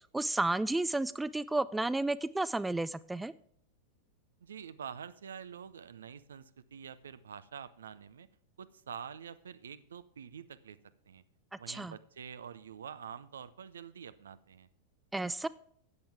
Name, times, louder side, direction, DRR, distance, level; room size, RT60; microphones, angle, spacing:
voice 1, 0.1-3.3 11.7-11.9 15.1-15.5, right 2 dB, 5° right, 17 dB, 0.3 m, -32 dB
voice 2, 4.4-8.3 8.6-10.8 11.1-11.2 11.5-14.7, right 7 dB, 65° right, 16 dB, 0.5 m, -47 dB
13.5 x 8.7 x 3.5 m, 0.63 s
figure-of-eight pair, 90°, 0 cm